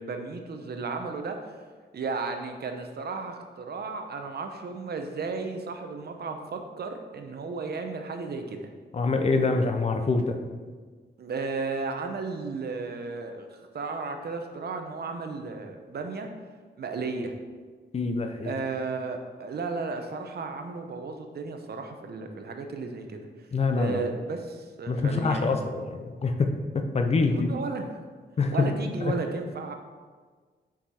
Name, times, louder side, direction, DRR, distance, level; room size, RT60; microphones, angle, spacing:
voice 1, 0.0-1.4 1.9-8.6 11.2-13.5 13.7-16.3 16.8-17.3 18.4-23.3 23.8-25.6 27.3-27.8 28.5-29.7, right 4 dB, 60° right, 5 dB, 0.7 m, -34 dB
voice 2, 8.9-10.4 17.9-18.5 23.5-24.0 24.9-27.5 28.4-28.5 29.1-29.2, left 3 dB, 35° left, 5 dB, 0.5 m, -25 dB
5.7 x 4.8 x 4.2 m, 1.5 s
wide cardioid pair, 180°, 19 cm